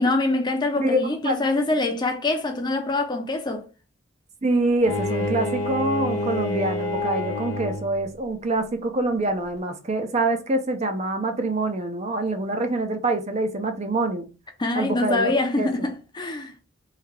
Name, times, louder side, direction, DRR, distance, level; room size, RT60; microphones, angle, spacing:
voice 1, 0.0-3.6 14.6-16.5, left 2 dB, 20° left, 0.6 m, -24 dB
voice 2, 0.8-1.5 4.4-14.3 14.7-15.3 15.6-15.9, right 2 dB, 35° right, 0.5 m, -25 dB
Bowed string instrument, 4.8-8.1, left 2 dB, 75° left, 0.8 m, -27 dB
3.2 x 2.8 x 3.5 m
head